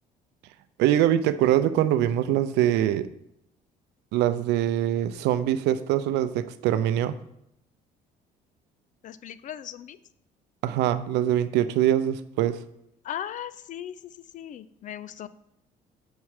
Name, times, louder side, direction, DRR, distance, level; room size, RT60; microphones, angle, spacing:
voice 1, 0.8-3.1 4.1-7.1 10.6-12.6, right 11 dB, 85° right, 13 dB, 0.5 m, -23 dB
voice 2, 9.0-10.0 13.0-14.0 14.3-15.3, left 10 dB, 50° left, 15 dB, 0.4 m, -37 dB
7.1 x 4.6 x 4.8 m, 0.79 s
cardioid pair, 110°, 17 cm